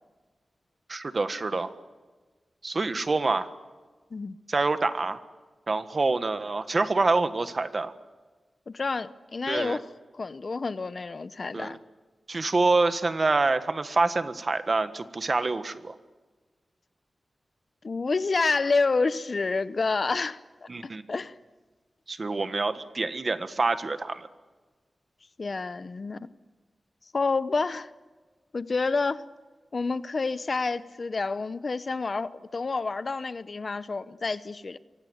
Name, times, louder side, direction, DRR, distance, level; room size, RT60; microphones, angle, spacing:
voice 1, 0.9-1.7 2.6-3.5 4.5-5.2 5.7-7.9 9.5-9.8 11.5-11.8 12.3-16.0 20.7-21.0 22.1-24.3, right 3 dB, 40° right, 10 dB, 1.5 m, -26 dB
voice 2, 8.7-11.8 17.8-20.7 21.1-21.3 25.4-26.3 27.1-27.9 28.5-29.2 29.7-34.8, left 4 dB, 45° left, 14 dB, 0.8 m, -29 dB
28.0 x 24.5 x 8.1 m, 1.3 s
wide cardioid pair, 120°, 0 cm